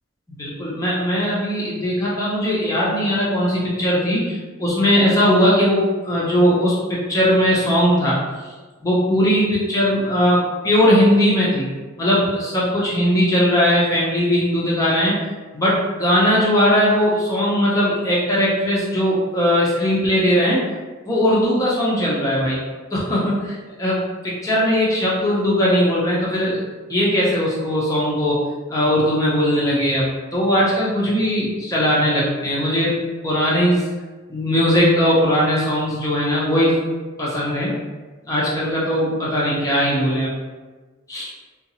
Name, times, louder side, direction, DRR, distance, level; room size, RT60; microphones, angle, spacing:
voice 1, 0.3-8.2 8.8-11.7 12.0-15.2 15.5-20.6 21.1-22.6 22.9-26.6 26.9-28.3 28.7-30.0 30.3-33.8 34.3-36.8 37.2-37.7 38.3-40.3 41.1-41.3, equal, 15° left, -6 dB, 0.6 m, -19 dB
3.8 x 2.5 x 2.8 m, 1.3 s
head